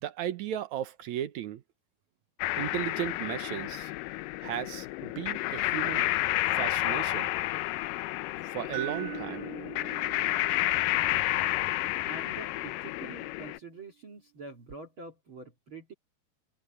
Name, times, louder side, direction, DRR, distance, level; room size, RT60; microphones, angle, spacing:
voice 1, 0.0-1.6 2.6-3.9 4.4-6.1 6.5-7.3 8.4-9.5, right 11 dB, 65° right, 2.0 m, -35 dB
sound 1, 2.4-13.6, left 17 dB, 80° left, 2.1 m, -31 dB
sound 2, 8.7-12.8, right 32 dB, 90° right, 2.9 m, -43 dB
voice 2, 12.1-15.9, right 4 dB, 40° right, 2.7 m, -46 dB
omnidirectional pair, 4.3 m